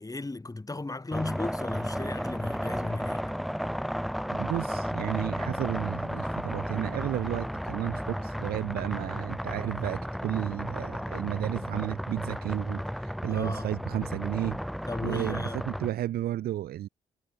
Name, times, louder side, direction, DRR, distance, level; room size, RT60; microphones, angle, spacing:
voice 1, 0.0-3.3 13.3-13.7 14.9-15.6, left 2 dB, 20° left, 4.8 m, -35 dB
sound 1, 1.1-15.9, equal, ahead, 1.3 m, -33 dB
voice 2, 4.3-14.6 15.0-16.9, right 13 dB, 80° right, 2.7 m, -32 dB
supercardioid pair, 55°, 16 cm